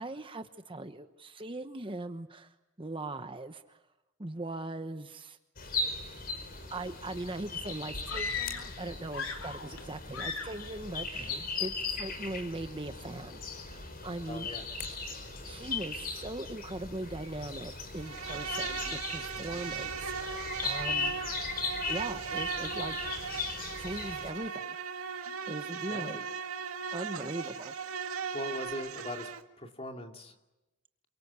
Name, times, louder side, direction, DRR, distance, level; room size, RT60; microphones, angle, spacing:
voice 1, 0.0-2.5 2.8-3.8 4.2-5.4 6.7-14.5 15.4-21.2 21.9-23.0 23.8-24.8 25.5-26.2 26.9-27.7, right 2 dB, 25° right, 8 dB, 1.1 m, -40 dB
sound 1, 5.6-24.3, left 4 dB, 45° left, 5.0 m, -38 dB
sound 2, 8.1-8.8 9.1-9.8 10.1-10.7, left 5 dB, 70° left, 3.1 m, -37 dB
voice 2, 14.3-14.7 19.3-19.7 25.9-26.2 28.3-29.3 29.6-30.3, left 1 dB, 30° left, 4 dB, 2.7 m, -41 dB
Insect, 18.0-29.4, right 6 dB, 90° right, 2.1 m, -38 dB
28.5 x 24.0 x 8.3 m, 1.0 s
head